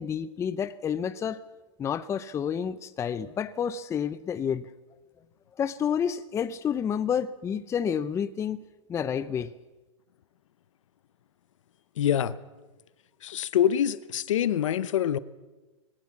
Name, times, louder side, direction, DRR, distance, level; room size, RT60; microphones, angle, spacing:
voice 1, 0.0-1.4 1.8-4.6 5.6-8.6 8.9-9.5, left 8 dB, 15° left, 14 dB, 0.6 m, -29 dB
voice 2, 12.0-12.4 13.2-15.2, left 10 dB, 80° left, 17 dB, 0.8 m, -25 dB
20.0 x 17.5 x 7.4 m, 1.2 s
hypercardioid pair, 130°, 16 cm